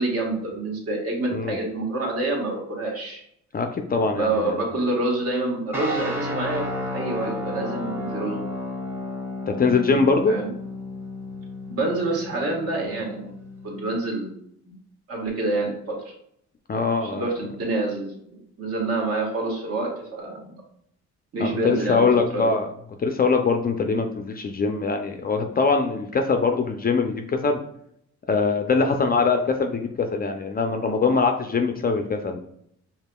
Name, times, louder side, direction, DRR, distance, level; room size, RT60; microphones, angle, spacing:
voice 1, 0.0-3.2 4.1-8.4 10.3-10.5 11.7-13.3 13.6-14.4 14.7-14.8 15.1-16.0 17.0-20.5 21.3-22.0 22.3-22.5, right 2 dB, 50° right, -1 dB, 1.4 m, -27 dB
voice 2, 3.5-4.6 9.5-10.4 16.7-17.3 21.4-22.7 23.0-27.6 28.3-32.4, left 4 dB, 30° left, 5 dB, 0.4 m, -22 dB
sound 1, 5.7-14.0, left 1 dB, 5° right, 0.8 m, -32 dB
4.8 x 2.8 x 2.2 m, 0.70 s
cardioid pair, 90°, 30 cm